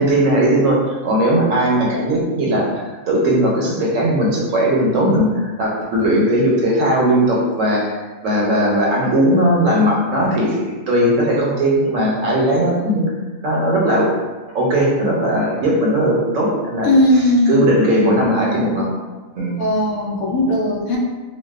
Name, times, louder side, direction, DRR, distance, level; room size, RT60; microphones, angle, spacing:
voice 1, 0.0-8.0 8.2-10.6 10.9-13.0 13.4-14.1 14.5-16.9 17.5-18.9 19.4-19.6, right 1 dB, 70° right, -3 dB, 0.9 m, -17 dB
voice 2, 16.8-17.6 19.6-21.0, left 1 dB, 80° left, -2 dB, 1.0 m, -17 dB
2.6 x 2.2 x 2.3 m, 1.3 s
omnidirectional pair, 1.4 m